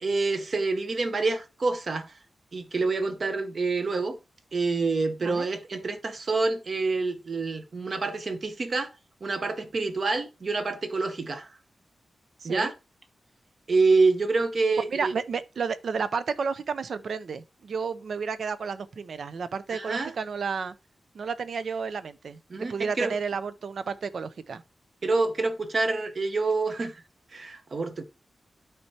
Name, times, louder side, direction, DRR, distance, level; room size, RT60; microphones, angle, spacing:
voice 1, 0.0-2.1 2.5-4.2 4.5-8.9 9.2-11.5 12.4-12.7 13.7-15.1 19.7-20.1 22.5-23.1 25.0-27.0 27.3-28.0, right 3 dB, 45° right, 0.8 m, -27 dB
voice 2, 12.4-12.7 14.9-20.7 21.1-24.6, right 5 dB, 65° right, 0.5 m, -32 dB
12.0 x 4.4 x 2.8 m
wide cardioid pair, 155°, 0 cm